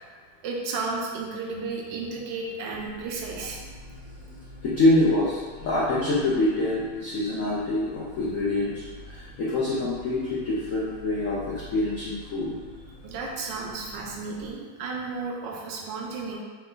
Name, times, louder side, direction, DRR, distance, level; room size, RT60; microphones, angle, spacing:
voice 1, 0.4-3.6 13.0-16.4, right 3 dB, 70° right, -1 dB, 1.2 m, -33 dB
sound 1, 2.7-14.5, left 1 dB, 50° left, 1.2 m, -46 dB
voice 2, 4.6-12.5, left 2 dB, 80° left, -7 dB, 0.7 m, -25 dB
4.3 x 2.2 x 3.7 m, 1.5 s
omnidirectional pair, 2.2 m